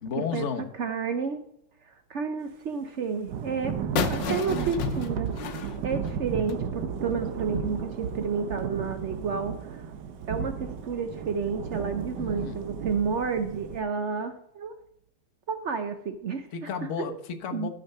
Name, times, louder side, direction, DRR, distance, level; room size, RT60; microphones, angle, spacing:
voice 1, 0.0-0.7 12.1-12.6 16.5-17.7, left 6 dB, 45° left, 1.2 m, -33 dB
voice 2, 0.7-1.4 1.9-5.3 5.8-9.9 10.3-14.7 15.5-16.7 17.1-17.2 17.5-17.7, right 5 dB, 85° right, 0.6 m, -31 dB
Thunder / Rain, 3.3-13.8, right 7 dB, 65° right, 1.3 m, -34 dB
sound 1, 4.0-6.7, left 7 dB, 65° left, 1.5 m, -32 dB
12.5 x 5.7 x 5.4 m
omnidirectional pair, 2.2 m